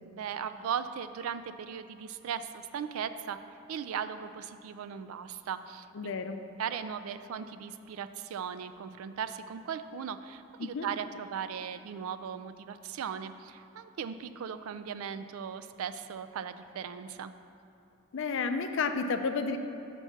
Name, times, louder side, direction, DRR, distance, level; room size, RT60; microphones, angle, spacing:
voice 1, 0.1-3.4 3.7-6.1 6.6-17.3, right 7 dB, 75° right, 12 dB, 0.3 m, -38 dB
voice 2, 5.9-6.4 10.6-10.9 18.1-19.6, left 4 dB, 60° left, 8 dB, 0.4 m, -31 dB
6.0 x 5.5 x 5.7 m, 2.8 s
head